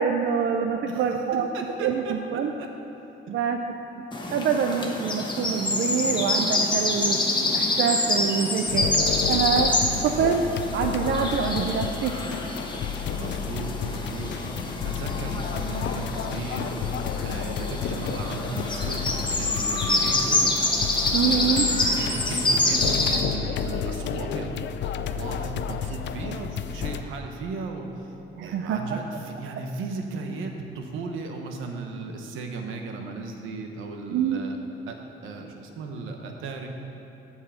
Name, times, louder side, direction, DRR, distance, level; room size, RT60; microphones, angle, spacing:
voice 1, 0.0-1.5 1.8-2.5 3.3-3.6 4.3-7.2 7.5-8.9 9.3-9.7 10.0-10.4 10.7-12.1 21.1-21.7 28.4-29.0 34.1-34.4, right 7 dB, 65° right, 4 dB, 0.6 m, -25 dB
voice 2, 0.9-1.2 1.5-2.7 3.3-3.4 13.2-14.3 14.8-16.8 17.2-20.5 21.2-24.5 25.1-28.1 28.4-34.6 34.9-35.0 35.2-36.7, right 3 dB, 90° right, 3 dB, 1.1 m, -36 dB
sound 1, 4.1-23.2, left 2 dB, 25° left, 1.2 m, -27 dB
sound 2, 8.7-27.0, left 8 dB, 65° left, 0.5 m, -32 dB
14.0 x 4.8 x 5.7 m, 3.0 s
cardioid pair, 90°, 20 cm